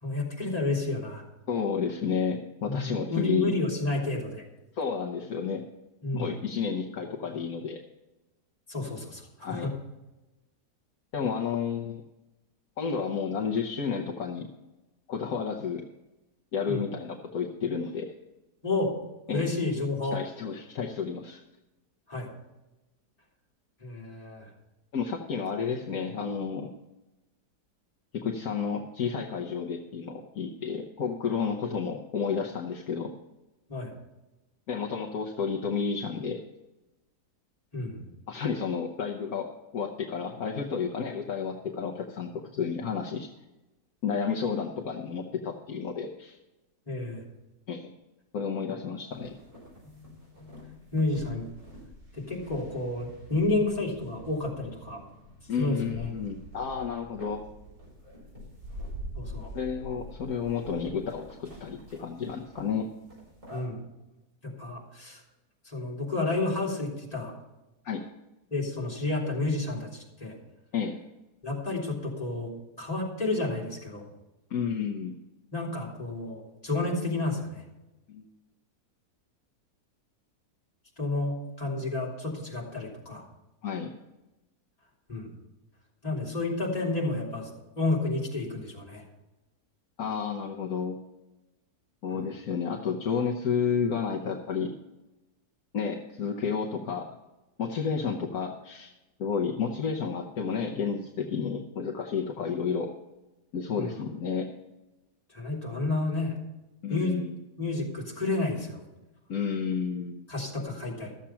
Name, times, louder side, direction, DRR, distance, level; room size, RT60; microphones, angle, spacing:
voice 1, 0.0-1.2 2.6-4.4 6.0-6.3 8.7-9.7 16.7-16.8 18.6-18.9 19.3-20.2 22.1-22.3 23.8-24.5 33.7-33.9 37.7-38.0 46.9-47.2 49.8-50.1 50.4-51.4 52.1-55.0 55.6-56.1 59.1-59.5 63.5-63.8 64.4-65.2 65.6-67.3 68.5-70.3 71.4-72.5 72.8-74.0 75.5-77.6 81.0-83.3 85.1-85.3 86.0-87.5 87.8-89.0 92.1-92.3 103.8-103.9 105.3-106.3 106.9-107.2 107.6-108.8 110.3-111.1, left 2 dB, 25° left, -4 dB, 3.2 m, -30 dB
voice 2, 1.5-3.5 4.7-5.6 6.1-7.8 9.4-9.7 11.1-12.0 12.8-14.5 15.1-15.8 16.5-18.1 19.3-19.4 20.1-21.4 24.9-26.7 28.1-33.1 34.7-36.4 38.3-43.3 44.0-46.4 47.7-47.9 48.3-49.4 55.5-57.4 59.5-62.9 67.8-68.0 70.7-71.0 74.5-75.2 78.1-78.2 83.6-83.9 90.0-91.0 92.0-94.8 95.7-97.1 97.6-98.9 99.2-102.9 103.5-104.5 106.8-107.3 109.3-110.3, left 6 dB, 65° left, 0 dB, 1.4 m, -31 dB
sound 1, 49.1-63.6, equal, 50° right, 5.9 m, -46 dB
13.5 x 7.4 x 5.7 m, 1.0 s
omnidirectional pair, 1.7 m